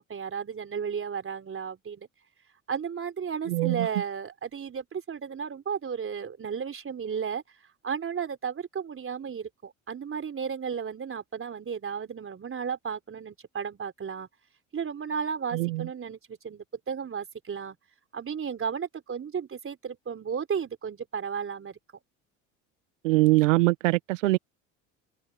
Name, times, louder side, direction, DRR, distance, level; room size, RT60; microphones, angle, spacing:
voice 1, 0.0-2.1 2.7-7.4 7.8-14.3 14.7-17.8 18.1-21.8, right 7 dB, 35° right, 4.1 m, -34 dB
voice 2, 3.5-3.9 15.5-15.9 23.0-24.4, right 20 dB, 85° right, 1.1 m, -23 dB
hypercardioid pair, 70°, 37 cm